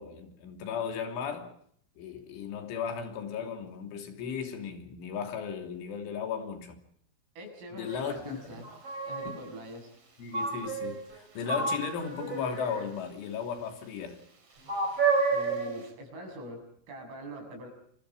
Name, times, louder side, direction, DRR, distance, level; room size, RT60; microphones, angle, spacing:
voice 1, 0.0-1.5 2.0-6.8 7.7-8.7 9.2-9.4 10.2-14.2, left 7 dB, 75° left, 5.5 m, -36 dB
voice 2, 7.4-8.7 9.1-9.9 15.3-17.7, equal, 85° right, 10.0 m, -43 dB
sound 1, 7.9-8.0 8.6-9.4 10.3-11.2 11.5-12.9 14.7-15.8, right 4 dB, 30° right, 5.2 m, -30 dB
28.5 x 24.0 x 5.0 m
omnidirectional pair, 5.6 m